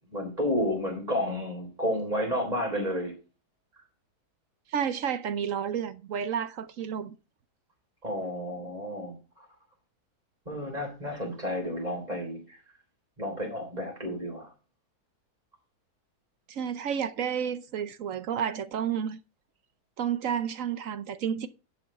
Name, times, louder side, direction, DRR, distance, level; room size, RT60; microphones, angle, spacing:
voice 1, 0.1-3.1 8.0-9.5 10.5-12.6 13.2-14.5, equal, 25° right, 3.7 m, -31 dB
voice 2, 4.7-7.2 16.5-19.2 20.0-21.5, right 8 dB, 60° right, 1.1 m, -31 dB
11.5 x 7.0 x 4.3 m
omnidirectional pair, 1.7 m